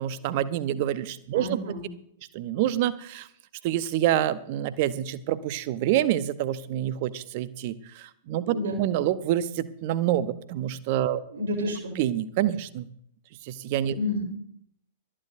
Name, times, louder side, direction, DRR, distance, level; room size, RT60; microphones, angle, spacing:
voice 1, 0.0-1.6 2.3-3.3 3.6-11.2 12.0-12.9 13.4-14.0, right 12 dB, 40° right, 15 dB, 0.8 m, -27 dB
voice 2, 1.3-1.9 8.4-8.8 11.3-12.0 13.9-14.2, left 1 dB, 60° right, 2 dB, 3.4 m, -30 dB
25.5 x 9.9 x 2.6 m, 0.69 s
figure-of-eight pair, 105°, 0 cm